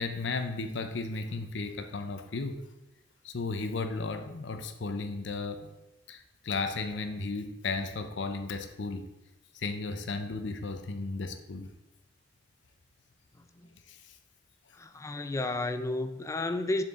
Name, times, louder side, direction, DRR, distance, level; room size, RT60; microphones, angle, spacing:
voice 1, 0.0-2.6 3.2-5.7 6.1-9.1 9.5-11.7 13.9-14.0, left 3 dB, 70° left, 8 dB, 0.6 m, -34 dB
voice 2, 14.7-16.8, left 2 dB, 15° left, 9 dB, 0.3 m, -32 dB
6.7 x 4.4 x 3.6 m, 0.94 s
head